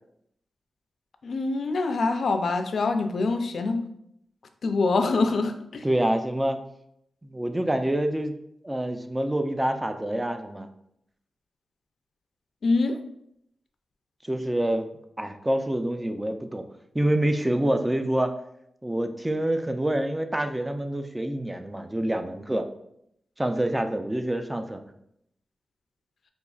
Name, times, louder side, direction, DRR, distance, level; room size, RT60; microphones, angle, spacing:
voice 1, 1.2-3.8 4.6-5.8 12.6-13.0, left 3 dB, 65° left, 7 dB, 0.4 m, -25 dB
voice 2, 5.8-6.6 7.2-8.3 8.6-10.7 14.2-14.9 15.2-16.6 16.9-18.3 18.8-22.7 23.4-24.8, right 1 dB, 10° right, 7 dB, 0.4 m, -26 dB
5.2 x 2.9 x 2.3 m, 0.74 s
wide cardioid pair, 105°, 0 cm